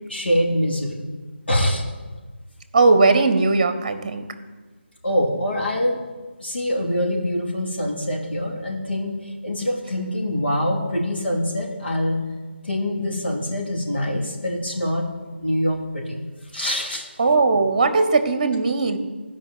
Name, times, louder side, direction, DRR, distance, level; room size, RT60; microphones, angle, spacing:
voice 1, 0.1-1.1 1.5-1.8 5.0-6.0 6.4-12.2 12.6-15.1 15.4-16.2 16.5-17.1, equal, 60° left, -1 dB, 3.1 m, -24 dB
voice 2, 2.7-4.2 17.2-19.0, right 3 dB, 35° right, 10 dB, 1.1 m, -18 dB
16.0 x 5.4 x 7.9 m, 1.3 s
figure-of-eight pair, 155°, 6 cm